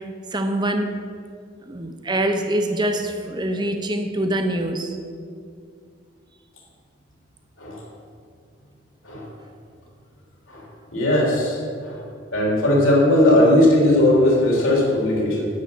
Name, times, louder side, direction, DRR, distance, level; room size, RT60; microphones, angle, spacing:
voice 1, 0.3-0.9 1.7-5.0, right 1 dB, 20° right, 6 dB, 0.8 m, -24 dB
voice 2, 10.9-12.0 12.3-15.5, left 1 dB, 85° left, -3 dB, 3.5 m, -18 dB
10.5 x 7.0 x 8.2 m, 2.3 s
head